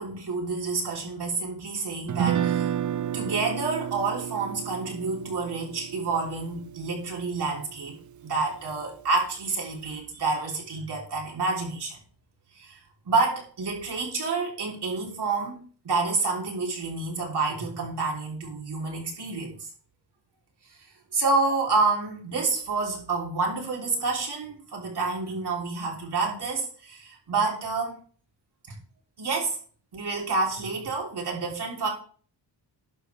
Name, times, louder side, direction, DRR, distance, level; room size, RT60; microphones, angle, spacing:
voice 1, 0.0-2.7 3.1-12.0 12.5-12.8 13.0-19.7 21.1-28.0 28.7-28.8 29.2-29.6 29.9-31.9, right 3 dB, 65° right, 3.5 m, -28 dB
Guitar, 2.1-8.2, right 10 dB, 45° right, 0.5 m, -31 dB
11.5 x 7.4 x 3.4 m
wide cardioid pair, 130°, 43 cm